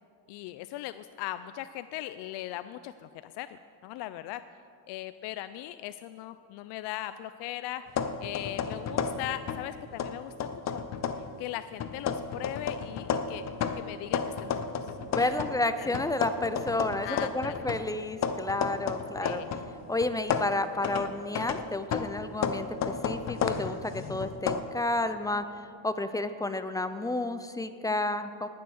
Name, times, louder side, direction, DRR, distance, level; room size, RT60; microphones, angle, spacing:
voice 1, 0.3-4.4 4.9-7.8 8.2-10.8 11.4-13.5 13.7-14.6 14.8-15.4 15.8-15.9 17.0-17.6 19.2-19.5, left 14 dB, 70° left, 12 dB, 0.5 m, -39 dB
sound 1, 7.9-9.7 10.0-11.3 11.8-15.6 15.9-19.7 20.0-24.6, left 6 dB, 40° left, 0.8 m, -32 dB
voice 2, 15.0-19.4 19.9-25.4 25.8-28.5, left 2 dB, 10° left, 11 dB, 0.4 m, -31 dB
19.0 x 7.0 x 6.3 m, 2.4 s
cardioid pair, 130°, 41 cm